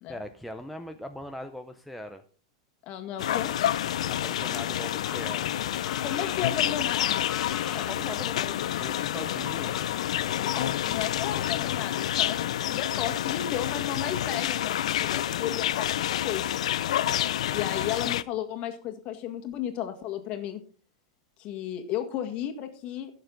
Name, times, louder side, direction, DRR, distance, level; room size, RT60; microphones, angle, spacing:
voice 1, 0.1-2.2 4.1-5.5 7.7-9.8 17.0-17.3, equal, ahead, 5 dB, 0.5 m, -40 dB
voice 2, 2.8-3.5 6.0-7.3 10.4-16.6 17.5-20.6 21.4-23.1, left 10 dB, 35° left, 6 dB, 1.7 m, -34 dB
sound 1, 3.2-18.2, left 12 dB, 85° left, 0.5 m, -28 dB
sound 2, 5.0-12.2, left 8 dB, 20° left, 1.0 m, -45 dB
15.5 x 6.6 x 3.9 m, 0.41 s
supercardioid pair, 150°, 3 cm